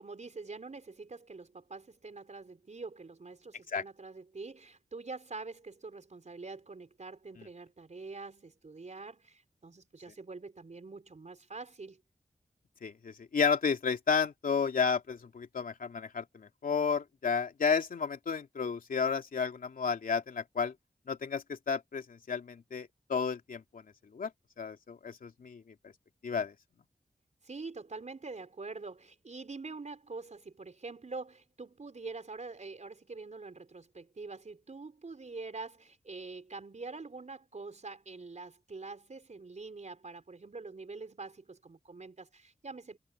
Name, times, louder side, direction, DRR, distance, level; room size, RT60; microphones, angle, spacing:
voice 1, 0.0-12.0 27.4-43.0, right 3 dB, 55° right, 4.6 m, -45 dB
voice 2, 12.8-20.7 21.1-23.8 24.1-24.3 24.6-25.9 26.2-26.5, left 6 dB, 85° left, 2.8 m, -32 dB
cardioid pair, 40°, 14 cm